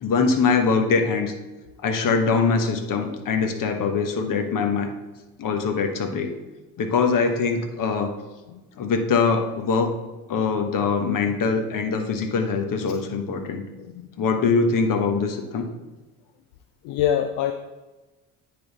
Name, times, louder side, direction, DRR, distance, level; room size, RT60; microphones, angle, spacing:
voice 1, 0.0-1.3 1.8-4.9 5.4-6.3 6.8-8.1 8.8-10.0 10.3-13.6 14.2-15.7, left 5 dB, 50° left, 5 dB, 1.1 m, -23 dB
voice 2, 13.8-14.1 16.8-17.5, left 10 dB, 70° left, 8 dB, 0.6 m, -25 dB
9.5 x 3.7 x 4.0 m, 1.1 s
hypercardioid pair, 65°, 43 cm